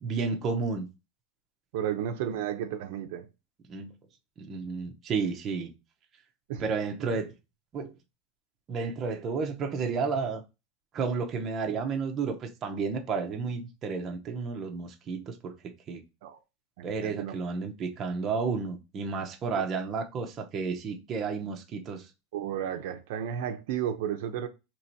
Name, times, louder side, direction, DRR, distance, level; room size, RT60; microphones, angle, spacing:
voice 1, 0.0-0.9 3.7-3.9 4.4-5.7 6.6-7.3 7.7-7.9 8.7-10.4 10.9-16.0 16.8-22.1, right 5 dB, 25° right, 0.7 m, -32 dB
voice 2, 1.7-3.3 6.5-6.7 16.2-16.4 16.8-17.4 22.3-24.5, right 9 dB, 65° right, 0.6 m, -33 dB
3.0 x 2.8 x 4.4 m
supercardioid pair, 160°, 0 cm